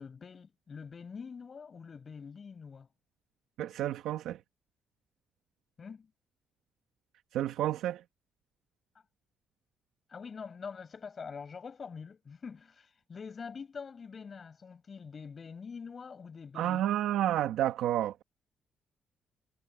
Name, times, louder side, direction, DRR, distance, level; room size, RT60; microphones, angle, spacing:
voice 1, 0.0-2.9 5.8-6.1 10.1-16.9, left 5 dB, 40° left, 7.7 m, -45 dB
voice 2, 3.6-4.4 7.3-8.0 16.6-18.2, right 12 dB, 85° right, 2.2 m, -30 dB
cardioid pair, 90°, 0 cm